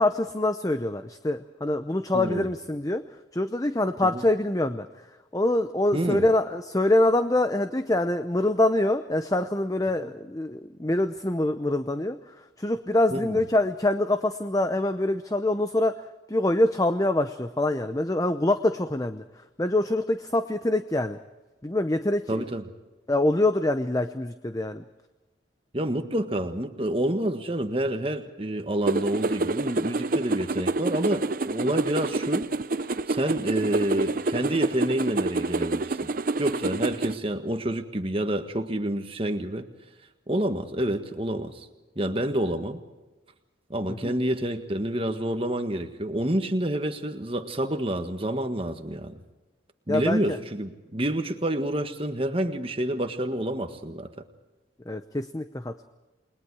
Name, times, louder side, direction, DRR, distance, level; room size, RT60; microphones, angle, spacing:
voice 1, 0.0-3.0 3.3-5.1 5.3-21.2 21.6-22.4 23.1-24.8 43.9-44.1 49.9-50.4 54.9-55.8, left 1 dB, 20° left, 9 dB, 0.7 m, -25 dB
voice 2, 2.1-2.5 4.1-4.2 5.9-6.2 13.1-13.4 22.3-22.6 25.7-32.5 33.1-36.0 36.4-39.7 40.3-41.7 41.9-42.8 43.7-49.1 49.9-54.1, right 1 dB, 30° right, 7 dB, 1.6 m, -28 dB
sound 1, 28.9-37.2, right 3 dB, 45° right, 0.7 m, -28 dB
29.5 x 21.5 x 4.8 m, 1.1 s
head